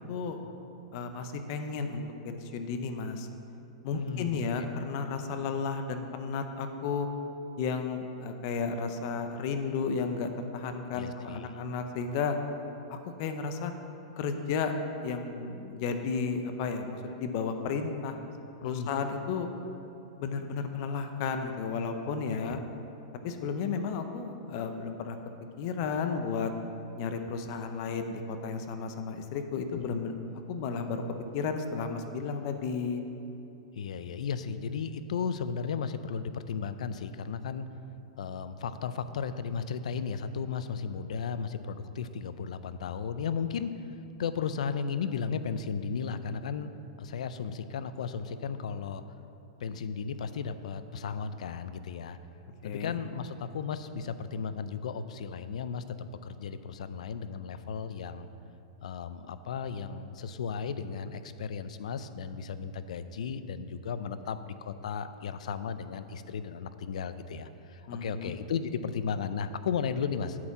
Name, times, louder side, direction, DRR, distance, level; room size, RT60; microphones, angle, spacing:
voice 1, 0.9-3.3 3.8-7.1 7.6-12.4 12.9-13.7 14.2-14.7 15.0-18.2 18.6-19.5 20.2-22.6 23.2-25.2 25.6-26.5 27.0-30.1 30.5-31.0 31.3-33.0 52.6-53.0 67.9-68.3, left 5 dB, 40° left, 7 dB, 0.6 m, -33 dB
voice 2, 3.9-4.4 10.9-11.6 18.6-18.9 22.3-22.6 29.7-30.0 33.7-37.7 38.2-43.9 44.2-46.7 47.0-49.0 49.6-52.2 52.6-58.3 58.8-70.4, left 6 dB, 80° left, 12 dB, 0.4 m, -35 dB
8.6 x 4.4 x 7.0 m, 2.8 s
supercardioid pair, 165°, 4 cm